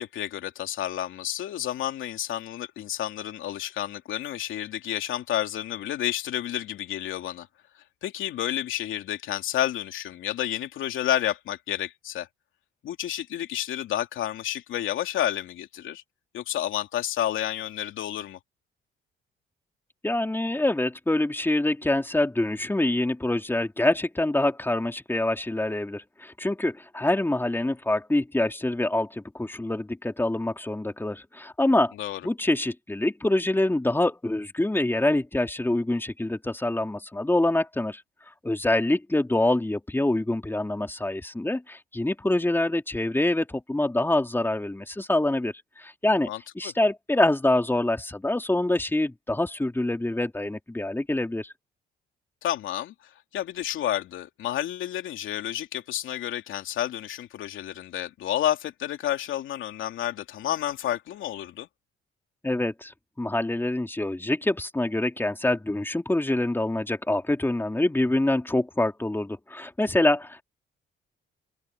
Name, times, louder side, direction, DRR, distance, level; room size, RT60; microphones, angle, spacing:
voice 1, 0.0-7.5 8.0-12.3 12.8-16.0 16.3-18.4 32.0-32.2 46.3-46.7 52.4-61.7, left 12 dB, 80° left, 3.0 m, -30 dB
voice 2, 20.0-31.9 32.2-38.0 38.4-46.3 46.6-51.5 62.4-70.4, left 1 dB, 10° left, 2.9 m, -25 dB
cardioid pair, 90°, 20 cm